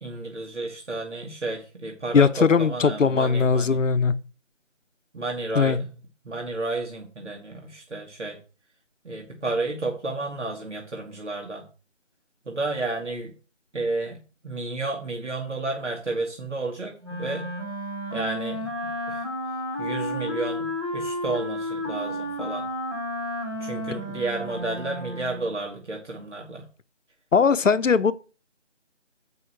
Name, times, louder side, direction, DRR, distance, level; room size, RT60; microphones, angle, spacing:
voice 1, 0.0-3.8 5.1-5.9 6.3-8.4 9.1-11.6 12.5-13.3 13.7-17.5 18.1-19.2 19.8-22.7 23.6-26.6, right 2 dB, 70° right, 1.8 m, -32 dB
voice 2, 2.1-4.1 5.5-5.8 27.3-28.1, left 5 dB, 85° left, 0.7 m, -19 dB
Wind instrument woodwind instrument, 17.0-25.6, left 1 dB, 20° right, 1.3 m, -32 dB
7.7 x 5.5 x 4.6 m
figure-of-eight pair, 175°, 37 cm